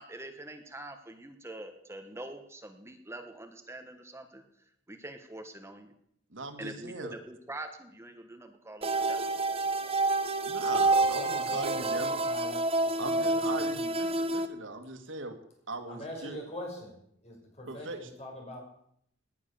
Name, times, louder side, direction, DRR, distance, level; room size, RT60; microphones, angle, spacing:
voice 1, 0.0-4.4 4.9-5.9 6.6-9.3, right 1 dB, 15° right, 6 dB, 1.4 m, -44 dB
voice 2, 6.3-7.1 10.5-12.1 13.0-15.4 15.7-16.4 17.7-18.0, right 2 dB, 85° right, 6 dB, 2.2 m, -39 dB
sound 1, 8.8-14.5, right 2 dB, 30° right, 1.1 m, -28 dB
voice 3, 11.0-14.0 15.9-18.6, equal, 35° left, 0 dB, 6.1 m, -44 dB
19.0 x 10.0 x 7.1 m, 0.70 s
head